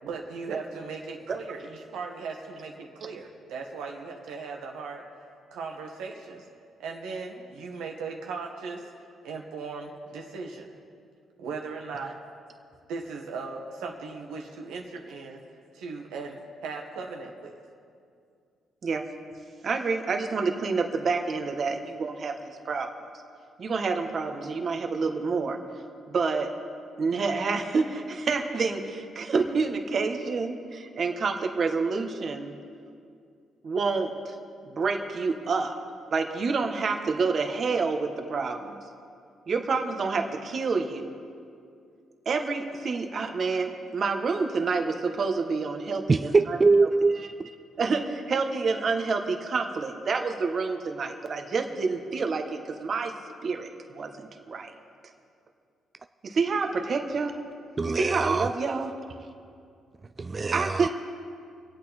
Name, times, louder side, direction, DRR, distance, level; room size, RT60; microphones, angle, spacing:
voice 1, 0.0-5.1 5.5-6.4 6.8-8.8 9.2-10.7 11.4-12.2 12.9-15.4 15.7-17.5, right 4 dB, 90° right, 1 dB, 1.7 m, -38 dB
voice 2, 19.6-22.9 23.6-25.6 26.1-26.5 27.0-32.6 33.6-34.3 34.6-35.7 36.1-38.8 39.5-41.1 42.2-46.6 47.8-53.1 53.4-54.7 56.2-57.4 58.0-58.9 60.5-60.9, right 4 dB, 50° right, 4 dB, 1.4 m, -28 dB
voice 3, 46.1-47.5 57.8-58.5 60.2-60.9, right 3 dB, 30° right, 9 dB, 0.3 m, -23 dB
25.0 x 8.5 x 4.4 m, 2.3 s
cardioid pair, 90°, 0 cm